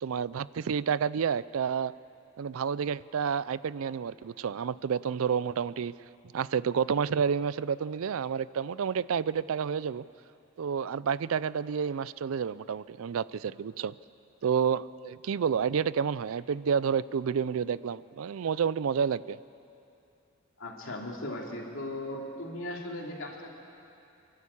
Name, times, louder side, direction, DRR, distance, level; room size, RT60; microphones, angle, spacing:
voice 1, 0.0-1.9 2.4-5.9 6.3-10.0 10.6-13.9 14.4-19.4, right 7 dB, 70° right, 19 dB, 0.4 m, -29 dB
voice 2, 20.6-23.5, left 1 dB, 65° left, -1 dB, 3.0 m, -37 dB
28.0 x 12.0 x 8.5 m, 2.7 s
head